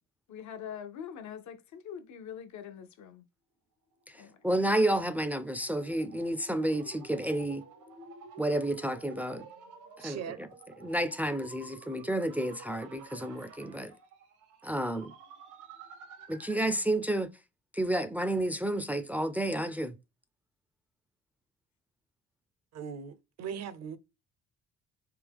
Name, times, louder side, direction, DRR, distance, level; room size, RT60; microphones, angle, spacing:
voice 1, 0.3-3.2 4.1-4.4, left 8 dB, 70° left, 0.7 m, -43 dB
voice 2, 4.1-7.7 8.4-9.5 10.0-10.5 10.8-13.9 14.6-15.1 16.3-17.3 17.7-20.0, right 1 dB, 5° right, 0.3 m, -30 dB
sound 1, 4.1-16.8, right 4 dB, 85° right, 1.0 m, -51 dB
voice 3, 10.0-10.4 22.7-24.0, right 7 dB, 60° right, 0.6 m, -39 dB
3.5 x 2.8 x 3.4 m
cardioid pair, 90°, 30 cm